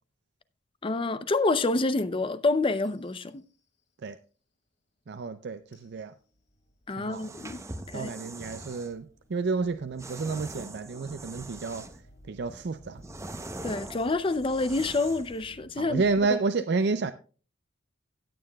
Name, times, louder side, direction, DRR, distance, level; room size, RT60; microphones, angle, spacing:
voice 1, 0.8-3.4 6.9-7.6 7.9-8.1 13.6-16.0 16.3-16.4, left 3 dB, 30° left, 0.5 m, -27 dB
sound 1, 2.7-3.8 5.7-16.3, equal, 65° left, 3.8 m, -56 dB
voice 2, 5.1-6.1 7.0-7.3 7.9-9.1 9.3-11.9 12.3-13.0 15.8-17.1, right 4 dB, 65° right, 0.5 m, -30 dB
sound 2, 7.1-8.9 10.0-12.1 12.5-15.4, right 2 dB, 15° right, 0.7 m, -42 dB
16.5 x 8.7 x 2.3 m
head